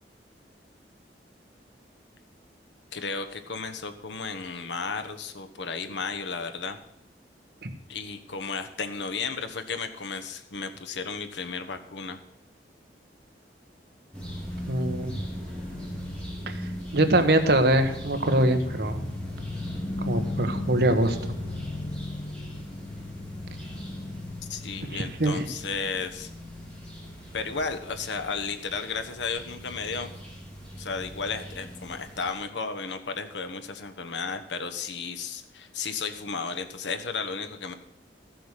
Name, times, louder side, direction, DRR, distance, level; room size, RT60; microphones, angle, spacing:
voice 1, 2.9-6.8 7.9-12.2 24.5-26.3 27.3-30.1 30.7-37.7, left 4 dB, 85° left, 7 dB, 1.2 m, -33 dB
sound 1, 14.1-32.3, left 1 dB, 5° left, 3.8 m, -37 dB
voice 2, 14.7-15.1 16.5-16.6 16.9-19.0 20.0-21.2 24.9-25.4, right 1 dB, 60° right, 7 dB, 1.3 m, -23 dB
14.5 x 7.8 x 6.7 m, 0.79 s
head